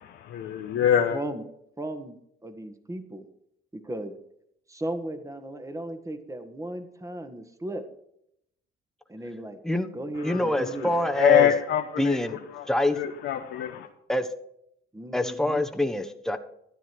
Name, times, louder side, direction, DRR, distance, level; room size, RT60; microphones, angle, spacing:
voice 1, 0.2-1.2 10.3-10.4 11.1-12.2 12.5-12.7 12.9-13.9, left 10 dB, 85° left, 1.1 m, -24 dB
voice 2, 1.1-1.4 1.8-2.2 2.4-3.3 3.7-4.1 4.7-7.8 9.1-9.6 9.9-10.9 14.9-15.6, right 1 dB, 15° right, 1.7 m, -36 dB
voice 3, 10.2-11.5 12.0-12.4 12.7-13.0 14.1-14.3 15.1-16.4, left 1 dB, ahead, 1.2 m, -25 dB
13.0 x 9.8 x 4.6 m
cardioid pair, 90°, 20 cm